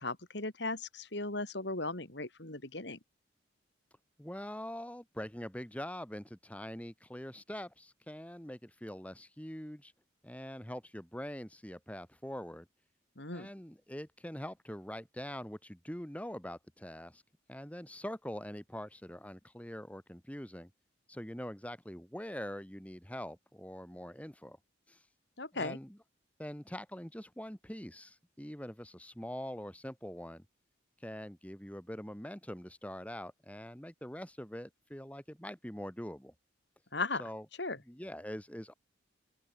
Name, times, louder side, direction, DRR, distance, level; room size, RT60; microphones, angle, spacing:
voice 1, 0.0-3.0 13.2-13.5 25.4-25.8 36.9-37.2 37.6-37.8, left 3 dB, 60° left, 3.3 m, -37 dB
voice 2, 4.2-9.9 10.2-12.7 13.3-17.2 17.5-20.7 21.1-24.6 24.9-25.0 25.5-26.0 26.4-30.5 31.0-36.3 37.2-37.5 37.9-38.7, equal, 5° left, 2.2 m, -44 dB
open air
head